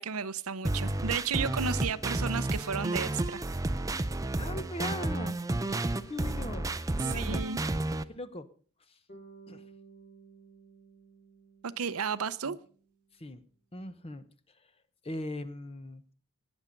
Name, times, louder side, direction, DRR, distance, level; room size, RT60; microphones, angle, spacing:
voice 1, 0.0-3.4 7.1-7.6 11.6-12.6, right 6 dB, 80° right, 15 dB, 0.7 m, -33 dB
sound 1, 0.6-8.0, right 2 dB, 15° right, 0.5 m, -31 dB
voice 2, 4.4-5.8 6.1-7.4 8.1-8.5 9.5-9.6 12.4-12.6 13.2-13.4 13.7-14.2 15.0-16.0, left 1 dB, 25° left, 11 dB, 1.0 m, -40 dB
Bass guitar, 9.1-13.2, right 4 dB, 45° left, 3.2 m, -55 dB
19.0 x 7.2 x 5.3 m, 0.43 s
head